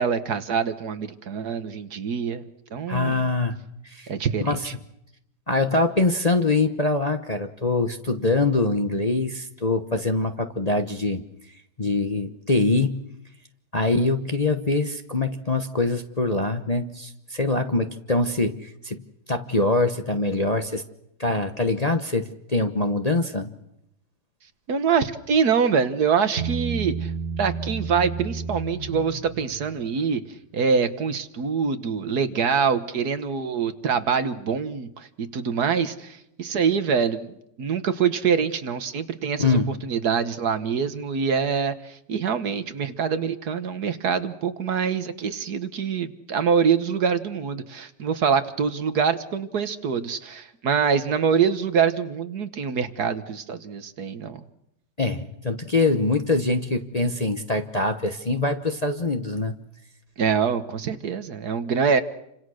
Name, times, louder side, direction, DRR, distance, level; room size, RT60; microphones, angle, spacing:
voice 1, 0.0-2.4 2.7-3.3 4.1-4.7 24.7-27.1 27.4-30.2 30.5-54.4 60.2-62.0, right 6 dB, 65° right, 11 dB, 1.8 m, -25 dB
voice 2, 2.9-4.1 4.4-4.7 5.5-11.2 11.8-13.1 13.7-19.0 19.3-20.8 21.2-23.5 39.4-39.7 55.0-59.6, left 2 dB, 25° left, 6 dB, 1.0 m, -24 dB
Bass guitar, 26.4-29.8, right 5 dB, 40° right, 1.8 m, -31 dB
29.0 x 26.0 x 6.5 m, 0.80 s
omnidirectional pair, 1.9 m